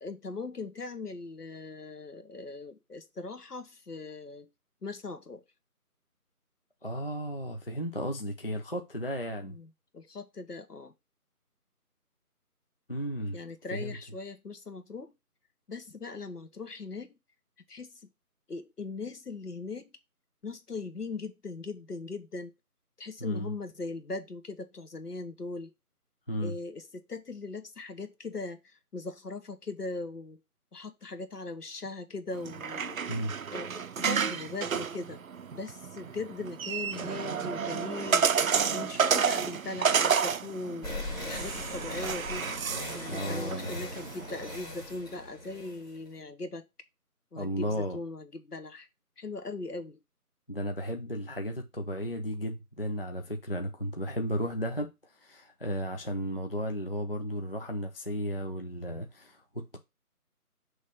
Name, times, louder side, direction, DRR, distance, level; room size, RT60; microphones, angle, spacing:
voice 1, 0.0-4.5 4.8-5.4 9.4-10.9 13.3-15.1 15.7-17.1 17.7-18.1 18.5-19.9 20.4-22.5 23.0-25.7 26.4-30.4 30.7-33.0 33.5-35.2 35.5-38.3 38.7-40.9 41.2-42.5 42.9-46.6 47.3-48.9 49.2-50.0, left 3 dB, 80° left, 1.4 m, -40 dB
voice 2, 6.8-9.6 12.9-13.4 13.7-14.0 23.2-23.5 26.3-26.6 33.1-33.3 43.1-43.8 47.3-48.0 50.5-59.8, equal, 40° left, 0.5 m, -34 dB
sound 1, 32.3-44.6, right 6 dB, 60° right, 0.5 m, -31 dB
sound 2, 40.8-46.1, left 1 dB, 15° left, 1.9 m, -39 dB
6.3 x 3.2 x 4.9 m
figure-of-eight pair, 165°, 46 cm